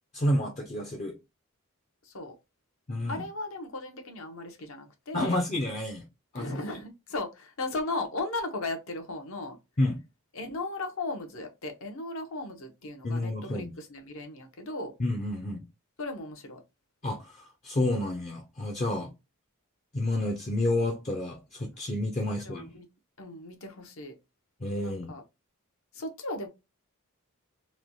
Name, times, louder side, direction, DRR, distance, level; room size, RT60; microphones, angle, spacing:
voice 1, 0.1-1.1 2.9-3.2 5.1-6.0 6.3-6.6 9.8-10.0 13.0-13.7 15.0-15.6 17.0-19.1 19.9-22.7 24.6-25.1, left 1 dB, 30° left, 0.5 m, -30 dB
voice 2, 2.0-2.4 3.1-5.4 6.3-9.6 10.3-14.9 16.0-16.6 18.9-19.1 22.3-22.9 23.2-24.1 24.8-25.2 25.9-26.5, left 2 dB, 70° left, 0.7 m, -36 dB
3.1 x 2.2 x 2.6 m
head